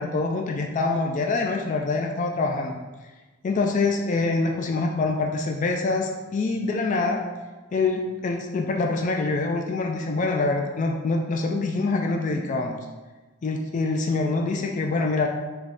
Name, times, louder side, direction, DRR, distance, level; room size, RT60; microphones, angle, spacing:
voice 1, 0.0-2.8 3.4-7.2 7.7-12.9 13.4-15.3, left 3 dB, 40° left, 2 dB, 0.3 m, -25 dB
3.5 x 3.1 x 3.8 m, 1.2 s
head